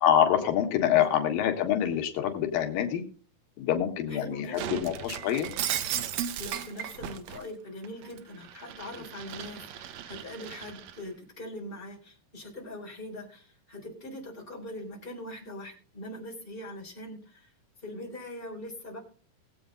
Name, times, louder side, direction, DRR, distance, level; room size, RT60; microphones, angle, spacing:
voice 1, 0.0-3.0 3.6-5.5, left 10 dB, 90° left, 5 dB, 3.2 m, -26 dB
voice 2, 4.1-4.9 6.4-17.5 17.8-19.0, left 1 dB, 15° left, 0 dB, 3.7 m, -42 dB
Shatter, 4.6-7.4 7.8-11.0, right 10 dB, 70° right, 1.9 m, -36 dB
19.0 x 8.3 x 3.8 m, 0.39 s
omnidirectional pair, 3.9 m